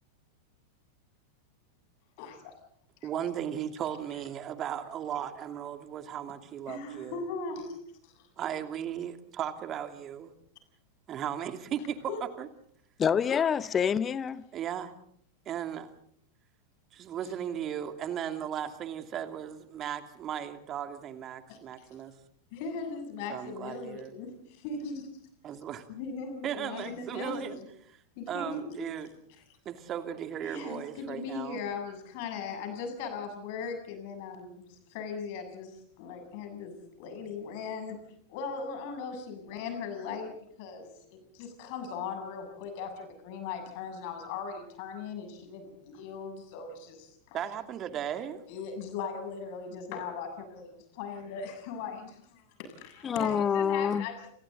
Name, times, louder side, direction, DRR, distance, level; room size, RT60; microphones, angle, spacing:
voice 1, 2.2-2.5 3.0-3.1 6.7-8.3 12.1-12.2 21.5-22.1 22.5-25.1 25.9-27.7 28.2-28.9 30.4-38.0 38.3-47.4 48.5-54.3, left 5 dB, 45° left, 7.4 m, -39 dB
voice 2, 3.0-7.2 8.4-10.3 11.1-12.0 12.4-12.5 14.5-14.9 15.5-15.9 16.9-22.1 23.3-24.1 25.4-25.8 26.4-27.6 28.3-29.1 29.6-31.6 47.3-48.4, right 9 dB, 30° right, 2.7 m, -36 dB
voice 3, 13.0-14.4 53.0-54.1, left 7 dB, 20° left, 1.0 m, -27 dB
29.5 x 29.0 x 3.9 m
figure-of-eight pair, 90°, 0 cm